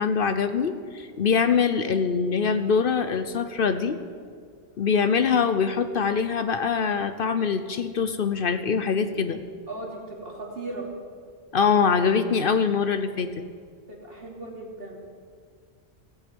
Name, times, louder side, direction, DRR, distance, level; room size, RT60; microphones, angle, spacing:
voice 1, 0.0-4.0 4.8-9.4 11.5-13.3, left 6 dB, 60° left, 10 dB, 0.9 m, -23 dB
voice 2, 9.7-10.9 13.9-15.0, right 2 dB, 60° right, -2 dB, 3.1 m, -37 dB
16.5 x 16.0 x 5.3 m, 2.1 s
omnidirectional pair, 1.1 m